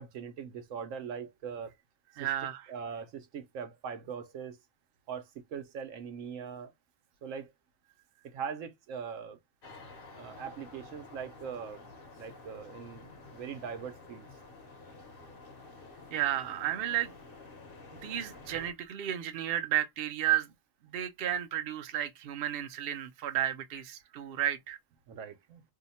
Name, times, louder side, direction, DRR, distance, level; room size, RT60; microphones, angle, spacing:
voice 1, 0.0-1.7 2.2-2.3 2.7-4.6 5.1-6.7 7.2-7.5 8.2-9.4 10.1-11.8 12.2-14.3 25.1-25.6, right 7 dB, 80° right, 1.0 m, -41 dB
voice 2, 2.2-2.6 16.1-17.1 18.0-20.5 20.9-24.8, right 12 dB, 55° right, 0.7 m, -32 dB
sound 1, 9.6-18.7, left 3 dB, 50° left, 1.0 m, -50 dB
2.7 x 2.2 x 4.0 m
omnidirectional pair, 1.3 m